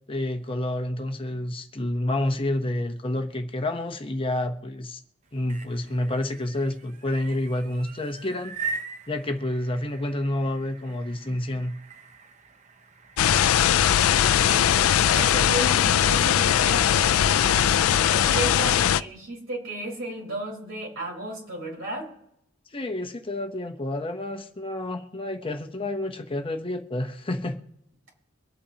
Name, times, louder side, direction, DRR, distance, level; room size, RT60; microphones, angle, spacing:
voice 1, 0.1-5.0 5.3-8.5 9.1-11.7 22.7-27.6, left 1 dB, 25° left, 5 dB, 0.8 m, -29 dB
sound 1, 5.2-15.4, right 4 dB, 35° right, 0.6 m, -41 dB
sound 2, 13.2-19.0, left 10 dB, 90° left, 0.4 m, -20 dB
voice 2, 14.1-22.1, right 1 dB, 70° right, -1 dB, 4.2 m, -34 dB
24.0 x 8.6 x 2.9 m, 0.77 s
head